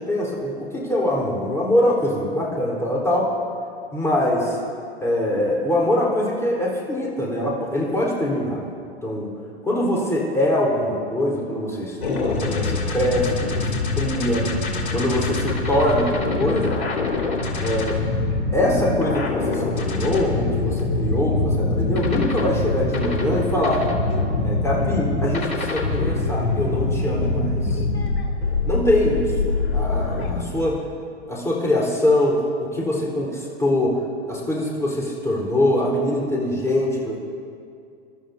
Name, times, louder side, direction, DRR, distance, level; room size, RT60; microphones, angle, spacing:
voice 1, 0.1-3.3 3.9-4.6 5.0-8.6 9.0-9.3 9.6-13.6 13.9-14.5 14.9-16.8 17.6-18.0 18.5-23.8 24.4-27.8 28.7-30.8 31.3-34.0 34.3-37.2, left 1 dB, 10° left, -4 dB, 4.1 m, -23 dB
sound 1, 12.0-30.4, left 3 dB, 70° left, 3.1 m, -24 dB
26.5 x 12.5 x 2.8 m, 2.4 s
hypercardioid pair, 110°, 33 cm